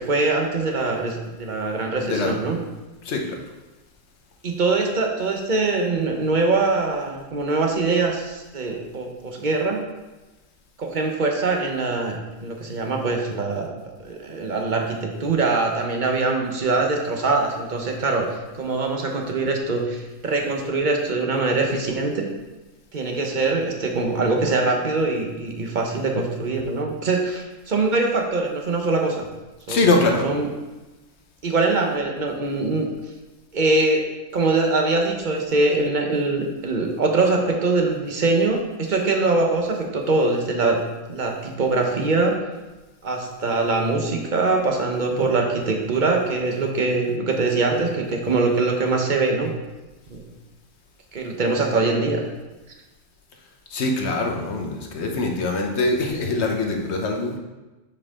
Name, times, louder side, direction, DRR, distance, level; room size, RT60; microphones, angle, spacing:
voice 1, 0.0-2.6 4.4-9.8 10.8-22.3 22.9-29.2 29.7-30.5 31.4-32.9 33.5-34.0 34.3-40.8 41.1-42.4 43.0-49.5 50.1-50.2 51.1-52.2, right 3 dB, 40° right, 2 dB, 0.9 m, -23 dB
voice 2, 2.0-2.3 3.0-3.4 29.7-30.3 53.7-57.4, left 2 dB, 60° left, 2 dB, 1.1 m, -23 dB
7.2 x 4.6 x 3.7 m, 1.1 s
omnidirectional pair, 1.4 m